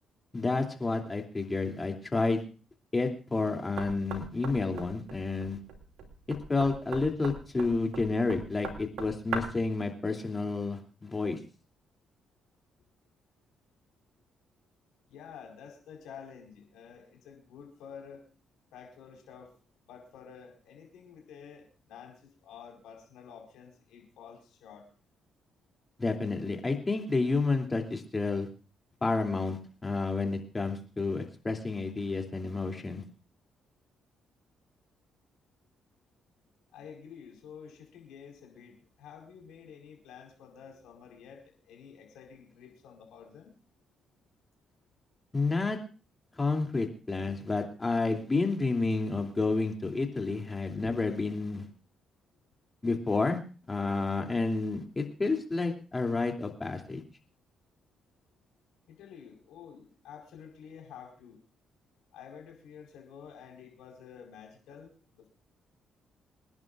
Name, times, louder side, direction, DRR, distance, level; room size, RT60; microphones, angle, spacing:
voice 1, 0.3-2.4 2.9-5.6 6.5-11.4 26.0-28.5 29.0-33.0 45.3-45.8 46.4-51.7 52.8-53.4 53.7-57.0, left 3 dB, 30° left, 3 dB, 2.9 m, -30 dB
Knock, 3.8-9.7, right 5 dB, 75° right, 2.5 m, -41 dB
voice 2, 15.1-18.2 18.7-19.5 19.9-24.9 36.7-43.6 58.9-61.4 62.1-65.3, left 7 dB, 75° left, 1 dB, 4.8 m, -50 dB
27.0 x 11.0 x 2.5 m, 0.35 s
hypercardioid pair, 50°, 0 cm